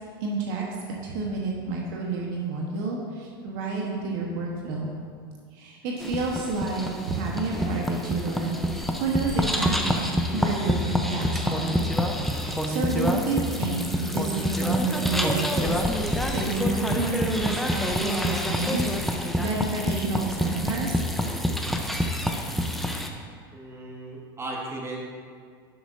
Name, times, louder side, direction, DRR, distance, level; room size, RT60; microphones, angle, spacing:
voice 1, 0.2-0.6 1.0-4.9 5.5-11.7 12.2-20.9, right 3 dB, 65° right, -2 dB, 1.3 m, -30 dB
sound 1, 6.0-23.1, equal, ahead, 0.8 m, -27 dB
voice 2, 23.5-25.0, right 2 dB, 20° right, -2 dB, 2.0 m, -36 dB
10.0 x 8.1 x 2.8 m, 2.1 s
hypercardioid pair, 95°, 12 cm